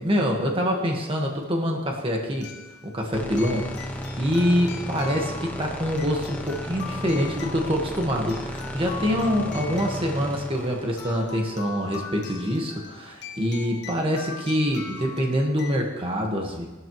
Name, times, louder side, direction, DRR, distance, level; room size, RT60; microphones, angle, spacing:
voice 1, 0.0-2.5 2.8-16.7, equal, 30° right, 0 dB, 1.5 m, -25 dB
sound 1, 1.0-1.1 2.4-15.8, left 6 dB, 60° left, 1.5 m, -41 dB
sound 2, 3.1-12.3, equal, 10° left, 1.3 m, -34 dB
19.5 x 12.0 x 3.1 m, 1.2 s
head